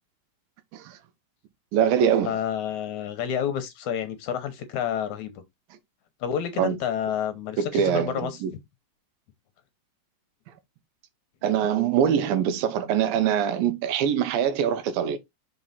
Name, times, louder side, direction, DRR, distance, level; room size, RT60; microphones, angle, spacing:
voice 1, 1.7-2.4 6.6-6.8 7.6-8.5 11.4-15.2, right 9 dB, 85° right, 2.7 m, -23 dB
voice 2, 2.2-5.4 6.2-8.4, left 8 dB, 70° left, 2.0 m, -29 dB
5.7 x 4.6 x 4.1 m
omnidirectional pair, 4.0 m